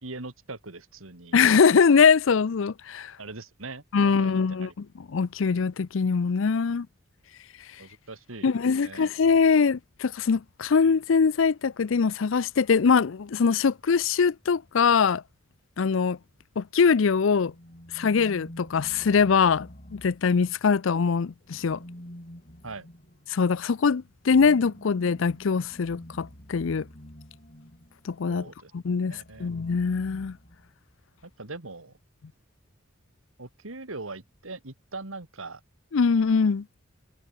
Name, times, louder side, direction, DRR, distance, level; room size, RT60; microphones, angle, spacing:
voice 1, 0.0-1.4 3.2-4.7 6.7-6.8 7.8-8.5 8.8-9.1 22.6-22.9 28.3-28.7 29.1-29.5 31.2-31.9 33.4-35.6, right 3 dB, 80° right, 2.6 m, -41 dB
voice 2, 1.3-3.1 3.9-6.9 8.4-15.2 15.8-16.2 16.6-17.5 17.9-21.8 23.3-26.9 28.0-28.5 28.7-30.4 35.9-36.6, left 5 dB, 70° left, 0.5 m, -22 dB
sound 1, 17.5-20.8 21.5-28.1 29.1-31.0, equal, 40° left, 4.5 m, -47 dB
head